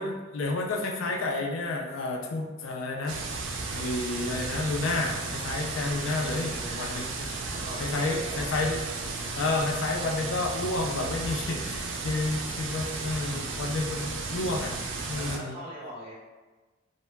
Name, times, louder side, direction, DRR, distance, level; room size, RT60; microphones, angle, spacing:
voice 1, 0.0-3.2 3.7-7.3 7.8-8.8 9.1-14.8 15.1-15.5, left 2 dB, 85° left, 0 dB, 0.4 m, -30 dB
sound 1, 3.1-15.4, right 3 dB, 70° right, 0.4 m, -34 dB
voice 2, 6.3-8.4 15.1-16.1, equal, 30° right, -7 dB, 0.9 m, -42 dB
2.1 x 2.0 x 3.3 m, 1.3 s
head